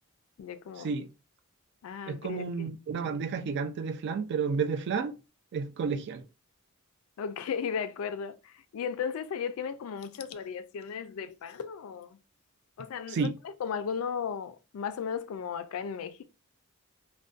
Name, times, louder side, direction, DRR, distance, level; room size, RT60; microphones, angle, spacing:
voice 1, 0.4-0.9 1.8-2.7 7.2-12.2 12.8-16.2, left 6 dB, 65° left, 0.3 m, -35 dB
voice 2, 2.1-5.2 5.5-6.3 13.1-13.4, right 5 dB, 50° right, 0.3 m, -31 dB
2.5 x 2.1 x 2.4 m
head